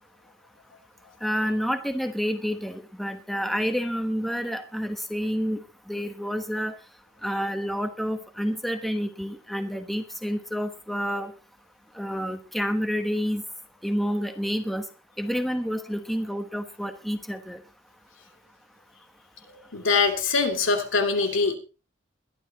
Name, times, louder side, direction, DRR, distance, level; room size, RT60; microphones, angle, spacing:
voice 1, 1.2-6.8 7.2-11.3 11.9-13.4 13.8-14.8 15.2-17.6, equal, ahead, 6 dB, 1.1 m, -29 dB
voice 2, 19.7-21.6, left 4 dB, 85° left, 4 dB, 3.0 m, -23 dB
22.0 x 11.5 x 3.0 m, 0.32 s
head